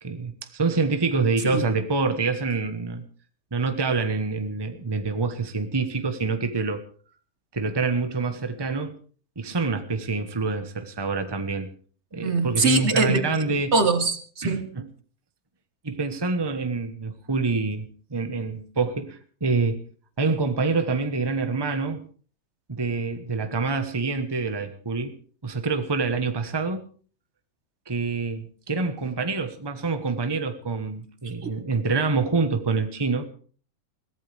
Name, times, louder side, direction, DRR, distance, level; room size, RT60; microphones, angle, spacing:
voice 1, 0.0-3.1 3.5-6.8 7.5-8.9 9.4-11.7 12.1-13.7 14.4-14.9 15.8-19.8 20.2-22.0 22.7-25.2 25.4-26.9 27.9-33.2, right 4 dB, 20° right, 8 dB, 1.2 m, -26 dB
voice 2, 12.2-13.4 13.7-14.7 31.4-31.5, right 3 dB, 50° right, 9 dB, 1.6 m, -23 dB
22.0 x 16.0 x 3.4 m, 0.42 s
omnidirectional pair, 1.5 m